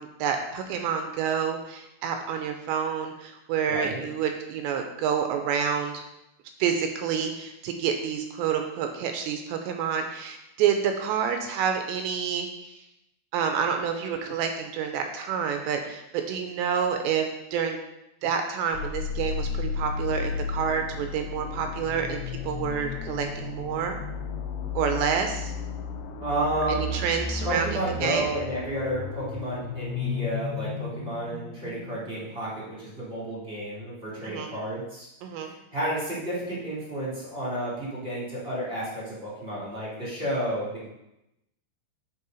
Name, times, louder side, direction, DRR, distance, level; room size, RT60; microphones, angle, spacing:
voice 1, 0.0-6.0 6.6-12.7 13.3-17.8 18.2-24.0 24.8-25.5 26.7-28.2 34.2-34.5 35.2-35.5, right 7 dB, 85° right, 5 dB, 2.7 m, -28 dB
voice 2, 3.7-4.0 26.2-27.0 27.4-35.1 35.4-40.8, right 1 dB, 20° right, -8 dB, 2.0 m, -31 dB
sound 1, 18.7-32.5, left 4 dB, 80° left, 2.9 m, -34 dB
8.3 x 4.8 x 5.3 m, 0.87 s
omnidirectional pair, 5.3 m